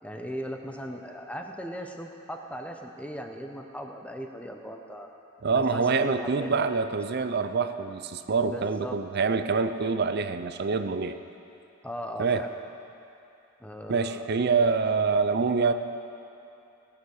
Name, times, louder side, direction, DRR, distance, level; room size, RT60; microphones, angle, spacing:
voice 1, 0.0-5.1 5.5-6.6 8.5-9.0 11.8-12.5 13.6-14.3 14.8-15.0, equal, 5° left, 3 dB, 0.8 m, -38 dB
voice 2, 5.4-11.2 12.2-12.5 13.9-15.7, right 4 dB, 50° right, 10 dB, 0.5 m, -26 dB
18.0 x 7.1 x 6.4 m, 2.8 s
head